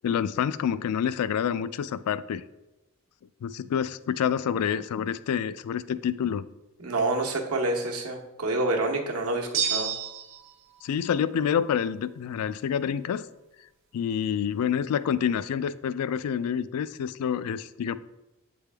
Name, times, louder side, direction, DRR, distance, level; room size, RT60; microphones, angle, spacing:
voice 1, 0.0-2.4 3.4-6.5 10.8-13.3 13.9-18.0, left 8 dB, 75° left, 16 dB, 0.3 m, -27 dB
voice 2, 6.8-9.9, right 2 dB, 80° right, 1 dB, 1.0 m, -28 dB
sound 1, 9.5-10.5, right 7 dB, 60° right, 0.6 m, -29 dB
8.1 x 3.4 x 3.4 m, 0.97 s
head